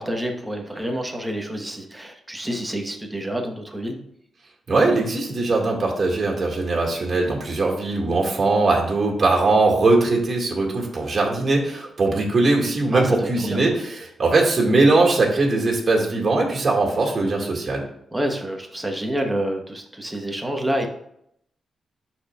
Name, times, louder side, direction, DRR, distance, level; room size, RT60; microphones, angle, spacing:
voice 1, 0.0-4.0 12.9-13.6 18.1-20.9, equal, 10° right, 2 dB, 1.1 m, -28 dB
voice 2, 4.7-17.8, right 3 dB, 45° right, -1 dB, 2.0 m, -20 dB
11.5 x 4.4 x 2.4 m, 0.74 s
cardioid pair, 95°, 0 cm